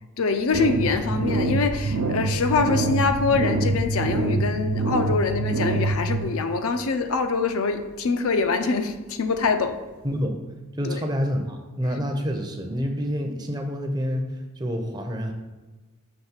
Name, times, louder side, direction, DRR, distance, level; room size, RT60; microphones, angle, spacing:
voice 1, 0.2-9.8 10.9-11.0, left 4 dB, 75° left, 7 dB, 0.5 m, -24 dB
sound 1, 0.5-6.2, right 2 dB, 75° right, 0.6 m, -25 dB
voice 2, 10.0-10.4 10.8-14.3 14.6-15.3, equal, 20° right, 4 dB, 0.5 m, -27 dB
6.0 x 3.2 x 5.8 m, 1.2 s
head